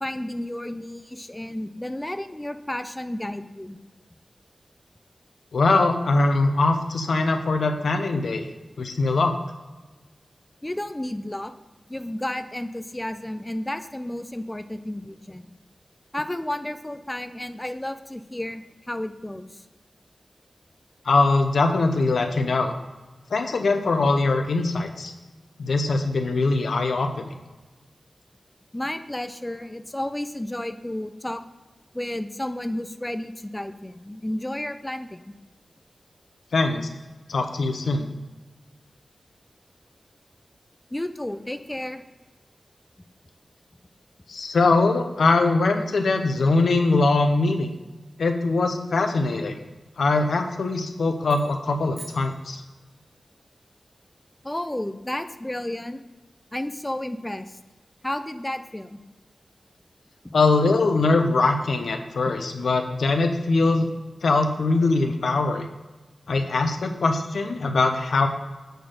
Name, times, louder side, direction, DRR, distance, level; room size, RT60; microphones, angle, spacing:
voice 1, 0.0-3.8 10.6-11.5 11.9-15.5 16.1-19.6 28.7-31.4 31.9-35.3 40.9-42.0 54.4-56.0 56.5-57.6 58.0-59.0 60.2-60.3, left 1 dB, 15° left, 9 dB, 0.4 m, -32 dB
voice 2, 5.5-8.4 8.8-9.3 21.0-22.7 23.3-25.1 25.6-27.3 36.5-36.9 37.3-38.1 44.3-47.7 48.2-49.6 50.0-52.6 60.3-63.9 64.2-65.7 66.3-68.3, left 3 dB, 90° left, 6 dB, 0.7 m, -22 dB
sound 1, 51.3-53.2, right 2 dB, 65° right, 1.9 m, -48 dB
7.8 x 4.4 x 4.9 m, 1.2 s
wide cardioid pair, 110°, 0 cm